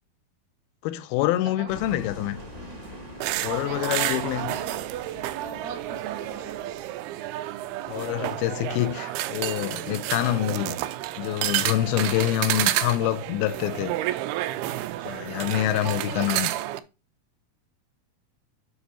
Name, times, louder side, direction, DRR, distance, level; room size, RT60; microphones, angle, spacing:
voice 1, 0.8-2.4 3.4-4.5 7.9-10.8 11.2-14.0 15.1-16.5, left 14 dB, 85° left, 2.4 m, -26 dB
sound 1, 1.7-7.2, equal, 35° right, 0.6 m, -44 dB
sound 2, 3.2-16.8, right 15 dB, 90° right, 2.6 m, -30 dB
voice 2, 3.4-5.0 5.4-6.8 11.9-12.3 15.8-16.5, right 6 dB, 70° right, 1.1 m, -40 dB
7.2 x 6.8 x 2.9 m
omnidirectional pair, 4.4 m